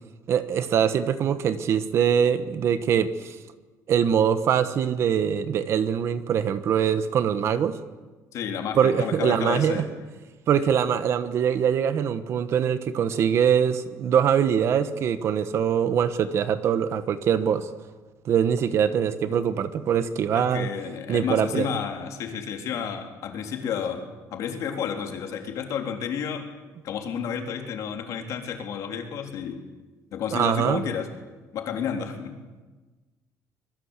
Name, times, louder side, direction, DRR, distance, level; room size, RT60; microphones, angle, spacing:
voice 1, 0.3-3.3 3.9-7.8 8.7-9.8 10.5-17.7 18.2-20.7 21.1-21.7 30.3-30.9, right 8 dB, 45° right, 12 dB, 1.2 m, -23 dB
voice 2, 8.3-9.8 20.3-26.5 26.8-29.6 30.1-31.1 31.5-32.3, left 7 dB, 55° left, 4 dB, 3.8 m, -31 dB
24.5 x 22.0 x 8.3 m, 1.3 s
cardioid pair, 175°, 7 cm